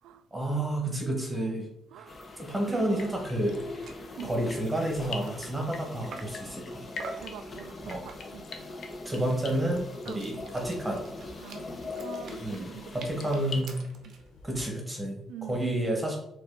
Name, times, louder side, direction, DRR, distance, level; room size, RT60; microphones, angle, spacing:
voice 1, 0.3-1.6 2.4-3.5 4.2-6.9 7.9-8.0 9.0-11.1 12.4-13.8 14.4-15.2 15.5-16.2, right 1 dB, 15° right, 1.1 m, -30 dB
voice 2, 1.3-1.6 1.9-2.2 2.7-3.0 4.1-4.3 7.1-8.5 10.1-10.2 11.4-14.1 15.3-15.7, right 10 dB, 90° right, 0.3 m, -45 dB
sound 1, 2.1-13.6, left 2 dB, 35° left, 0.8 m, -42 dB
sound 2, 2.9-14.6, left 4 dB, 65° left, 0.6 m, -47 dB
sound 3, 3.4-3.6 3.8-4.1 4.5-6.5 7.0-7.4 7.9-8.4 8.8-14.3, right 3 dB, 70° right, 0.7 m, -47 dB
4.3 x 2.6 x 3.9 m
cardioid pair, 90°, 0 cm